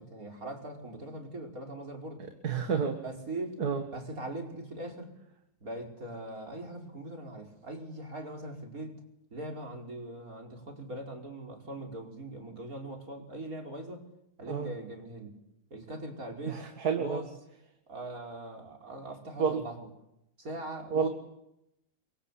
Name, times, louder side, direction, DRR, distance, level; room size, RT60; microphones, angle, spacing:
voice 1, 0.0-2.2 3.0-3.6 3.9-5.1 5.6-9.0 9.3-14.0 14.4-15.4 15.7-16.6 16.9-17.3 17.9-19.9 20.4-21.1, right 1 dB, 65° right, 2 dB, 5.5 m, -41 dB
voice 2, 2.4-3.0 3.6-3.8 14.5-14.7 16.5-17.2 19.4-19.6 20.9-21.1, right 6 dB, 80° right, 5 dB, 2.3 m, -29 dB
29.0 x 23.5 x 8.5 m, 0.84 s
omnidirectional pair, 1.6 m